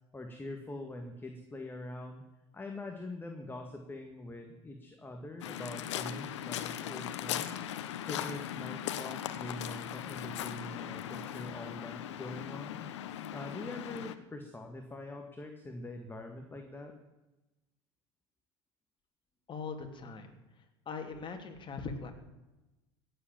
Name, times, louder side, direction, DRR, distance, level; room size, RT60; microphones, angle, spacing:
voice 1, 0.1-2.2 2.5-7.7 8.0-12.9 13.3-16.9, left 2 dB, 15° left, 4 dB, 2.1 m, -44 dB
Waves surf, 5.4-14.2, left 10 dB, 80° left, 1.0 m, -39 dB
voice 2, 19.5-20.4 20.9-22.1, left 4 dB, 35° left, 4 dB, 2.9 m, -40 dB
16.5 x 8.1 x 9.2 m, 1.1 s
hypercardioid pair, 85°, 15 cm